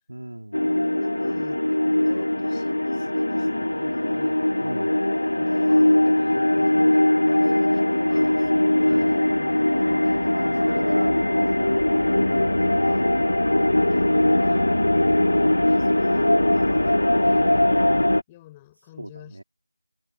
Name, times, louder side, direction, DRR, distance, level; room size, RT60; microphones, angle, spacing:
voice 1, 0.1-0.6 2.0-2.2 4.6-5.0 8.9-9.1 10.3-11.2 11.6-13.1 19.0-19.4, right 1 dB, 75° right, 2.4 m, -36 dB
sound 1, 0.5-18.2, left 1 dB, 85° left, 0.8 m, -21 dB
voice 2, 0.6-1.7 2.1-4.4 5.4-11.3 11.9-13.1 13.9-17.7 18.3-19.4, left 15 dB, 10° left, 5.3 m, -48 dB
figure-of-eight pair, 175°, 0 cm